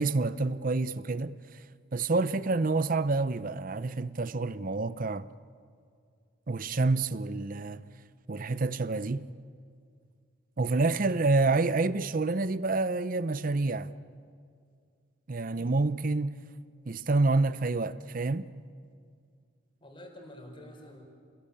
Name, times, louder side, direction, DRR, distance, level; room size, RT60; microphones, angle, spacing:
voice 1, 0.0-1.4 1.9-5.3 6.5-7.8 8.3-9.3 10.6-13.9 15.3-16.4 16.9-18.5, right 3 dB, 45° right, 0.7 m, -28 dB
voice 2, 10.7-11.2 19.8-21.0, left 1 dB, 25° left, 4.6 m, -48 dB
28.5 x 20.5 x 8.6 m
head